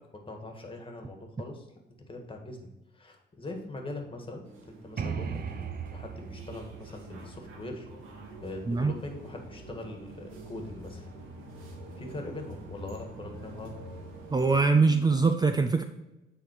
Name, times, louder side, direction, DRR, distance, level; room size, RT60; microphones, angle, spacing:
voice 1, 0.1-1.7 2.1-5.6 5.9-7.9 8.4-11.1 12.0-13.7, left 2 dB, 25° left, 3 dB, 1.7 m, -41 dB
sound 1, 4.4-14.5, right 1 dB, 85° right, 1.5 m, -46 dB
sound 2, 5.0-8.6, right 6 dB, 50° right, 0.8 m, -38 dB
voice 2, 14.3-15.8, right 4 dB, 20° right, 7 dB, 0.5 m, -23 dB
9.4 x 3.9 x 4.6 m, 0.97 s
cardioid pair, 90°, 20 cm